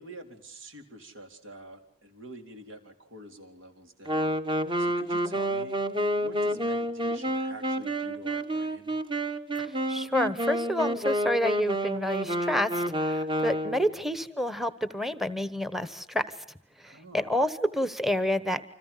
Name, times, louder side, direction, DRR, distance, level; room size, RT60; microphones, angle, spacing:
voice 1, 0.0-4.4 4.8-5.8 6.1-9.0 16.8-17.4, right 1 dB, 75° right, 6 dB, 4.1 m, -47 dB
Wind instrument woodwind instrument, 4.1-14.0, right 1 dB, 25° right, 1.4 m, -29 dB
voice 2, 9.6-16.4 16.8-18.6, left 1 dB, ahead, 13 dB, 1.1 m, -29 dB
29.5 x 26.5 x 5.7 m, 0.62 s
head